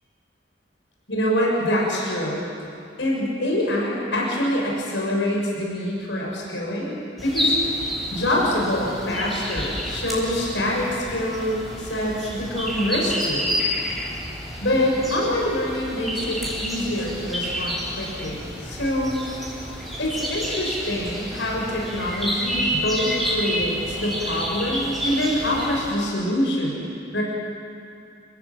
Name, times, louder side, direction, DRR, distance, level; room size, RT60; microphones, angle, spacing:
voice 1, 1.1-2.4 3.0-7.5 8.1-13.5 14.6-19.2 20.0-27.2, left 1 dB, 70° left, -3 dB, 6.8 m, -25 dB
sound 1, 7.2-25.9, equal, ahead, 7.9 m, -29 dB
29.5 x 16.0 x 9.0 m, 2.5 s
head